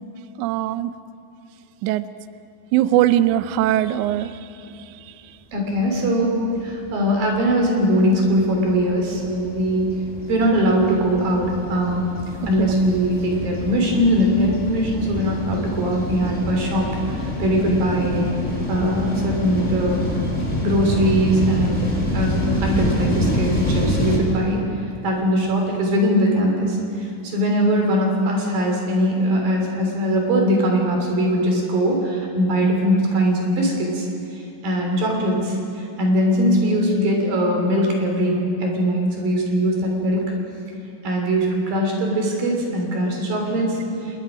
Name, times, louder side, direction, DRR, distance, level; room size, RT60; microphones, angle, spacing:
voice 1, 0.4-0.9 1.8-2.1 2.7-4.4 12.6-12.7, right 13 dB, 85° right, 14 dB, 1.7 m, -20 dB
voice 2, 5.5-10.0 10.3-12.0 12.5-18.3 18.7-20.1 20.6-21.9 22.1-24.6 25.0-34.1 34.4-40.3 41.0-44.2, equal, 70° right, 1 dB, 5.0 m, -21 dB
sound 1, 6.5-24.2, left 1 dB, 10° left, 2.3 m, -27 dB
25.5 x 21.5 x 5.2 m, 2.7 s
omnidirectional pair, 4.2 m